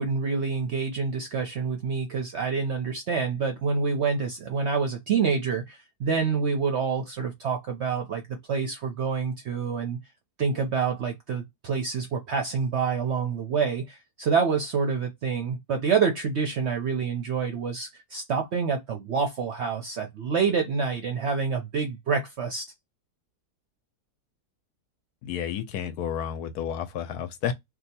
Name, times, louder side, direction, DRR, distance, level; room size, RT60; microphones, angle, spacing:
voice 1, 0.0-8.2 8.5-10.0 10.4-22.6, right 5 dB, 65° right, 0.7 m, -27 dB
voice 2, 25.2-27.5, left 9 dB, 75° left, 1.0 m, -31 dB
2.8 x 2.2 x 4.1 m
omnidirectional pair, 1.8 m